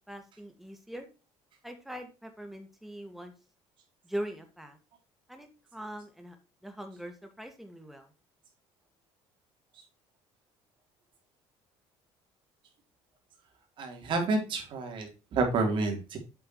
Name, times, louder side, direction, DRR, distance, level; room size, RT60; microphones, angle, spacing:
voice 1, 0.1-1.1 1.6-3.3 4.0-4.8 5.3-6.4 6.6-8.1, right 1 dB, ahead, 5 dB, 2.0 m, -41 dB
voice 2, 13.8-16.2, right 3 dB, 50° right, 3 dB, 3.6 m, -29 dB
8.4 x 7.5 x 3.1 m, 0.31 s
cardioid pair, 125°, 11 cm